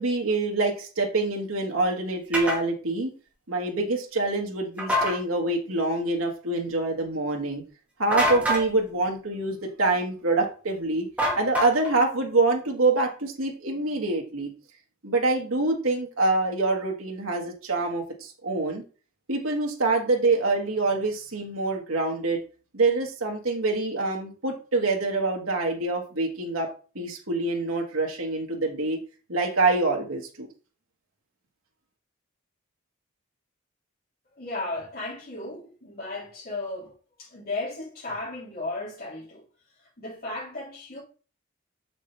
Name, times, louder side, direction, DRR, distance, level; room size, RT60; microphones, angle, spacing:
voice 1, 0.0-3.1 3.5-7.6 8.0-11.1 11.3-14.5 15.0-18.8 19.3-22.4 22.7-29.0 29.3-30.5, right 2 dB, 90° right, 1.5 m, -26 dB
sound 1, 2.3-2.6 4.8-5.2 8.1-8.7 11.2-12.0, equal, 5° right, 2.2 m, -25 dB
voice 2, 34.3-39.4 40.0-41.0, left 2 dB, 50° left, 3.3 m, -35 dB
7.0 x 6.1 x 3.3 m
head